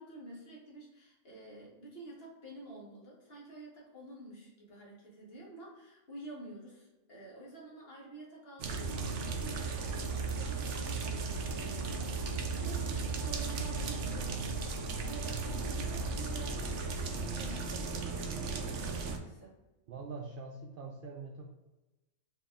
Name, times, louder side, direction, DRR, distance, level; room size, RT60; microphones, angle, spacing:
voice 1, 0.0-14.6 15.0-19.5, right 2 dB, 45° left, -3 dB, 1.4 m, -49 dB
sound 1, 8.6-19.2, right 4 dB, 65° right, 0.8 m, -35 dB
voice 2, 19.9-21.4, right 4 dB, 85° right, 0 dB, 0.4 m, -44 dB
4.7 x 2.9 x 3.7 m, 1.1 s
omnidirectional pair, 1.5 m